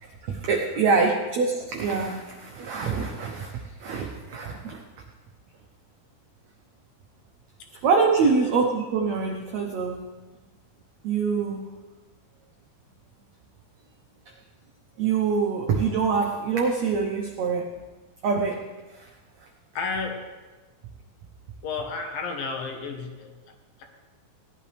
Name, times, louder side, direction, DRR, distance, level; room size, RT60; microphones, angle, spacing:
voice 1, 0.0-4.8 7.8-10.0 11.0-11.7 15.0-17.6 18.2-18.6 18.9-19.1, right 5 dB, 90° right, 1 dB, 1.5 m, -25 dB
voice 2, 19.7-20.3 21.6-23.8, left 4 dB, 70° left, 3 dB, 2.8 m, -32 dB
18.0 x 10.5 x 3.3 m, 1.2 s
omnidirectional pair, 4.4 m